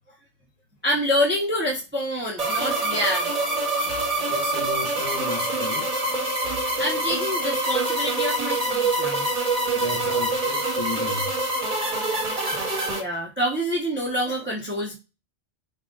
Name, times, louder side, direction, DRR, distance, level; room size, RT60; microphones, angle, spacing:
voice 1, 0.8-3.4 3.8-3.9 6.8-9.3 12.5-12.6 12.9-14.9, equal, 10° right, 0.9 m, -27 dB
sound 1, 2.4-13.0, right 2 dB, 35° right, 1.2 m, -25 dB
voice 2, 3.9-5.9 9.7-11.3, left 2 dB, 35° left, 2.1 m, -34 dB
5.0 x 2.5 x 3.8 m
omnidirectional pair, 1.2 m